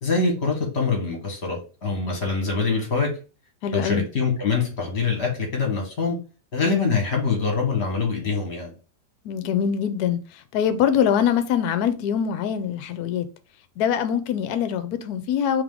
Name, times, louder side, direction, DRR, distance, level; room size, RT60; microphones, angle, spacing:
voice 1, 0.0-3.1 3.7-6.1 6.5-8.7, left 4 dB, 40° left, 1.4 m, -24 dB
voice 2, 3.6-4.0 9.2-13.3 13.8-15.6, left 8 dB, 70° left, 1.1 m, -23 dB
3.4 x 3.2 x 3.7 m
omnidirectional pair, 1.9 m